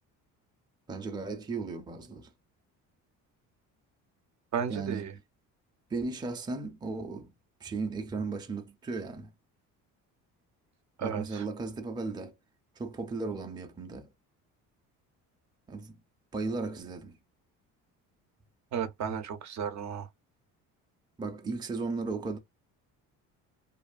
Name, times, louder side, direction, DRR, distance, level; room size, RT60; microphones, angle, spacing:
voice 1, 0.9-2.3 4.7-5.1 5.9-7.3 7.6-9.3 11.0-12.3 12.8-14.1 15.7-16.0 16.3-17.2 21.2-22.4, right 3 dB, 10° right, 0.5 m, -35 dB
voice 2, 4.5-5.2 11.0-11.4 18.7-20.1, right 7 dB, 55° right, 0.6 m, -34 dB
2.6 x 2.4 x 2.3 m
cardioid pair, 105°, 34 cm